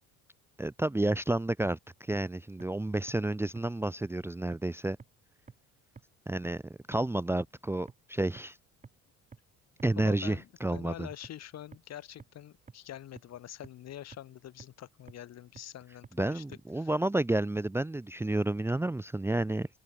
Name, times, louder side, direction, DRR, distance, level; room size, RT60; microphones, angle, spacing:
voice 1, 0.6-5.0 6.3-6.6 6.9-8.6 9.8-11.1 16.2-19.7, right 2 dB, 10° right, 0.8 m, -30 dB
sound 1, 2.1-2.2 2.6-2.7 3.1-3.2 3.6-3.7 4.0-4.1 4.5-4.6 5.0-5.1 5.5-5.6 6.0-6.1 6.4-6.5 6.9-7.0 7.4-7.5 7.9-8.0 8.4-8.5 8.8-8.9 9.3-9.4 9.8-9.9 10.3-10.4 10.8-10.9 11.2-11.3 11.7-11.8 12.2-12.3 12.7-12.8 13.2-13.3 13.6-13.7 14.1-14.2 14.6-14.7 15.1-15.2 15.6-15.7 16.0-16.1 16.5-16.6, right 4 dB, 25° right, 2.9 m, -48 dB
voice 2, 9.9-16.9, left 11 dB, 55° left, 2.6 m, -46 dB
cardioid pair, 100°, 31 cm